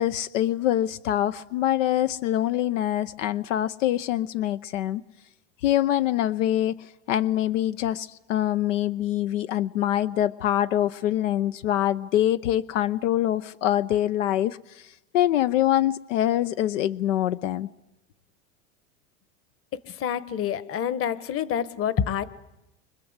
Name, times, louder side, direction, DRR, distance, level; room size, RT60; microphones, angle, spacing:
voice 1, 0.0-5.0 5.6-6.7 7.1-14.6 15.1-17.7, left 12 dB, 80° left, 12 dB, 0.9 m, -24 dB
voice 2, 20.0-22.2, left 9 dB, 35° left, 15 dB, 1.4 m, -27 dB
29.5 x 24.5 x 8.1 m, 0.94 s
supercardioid pair, 110°, 37 cm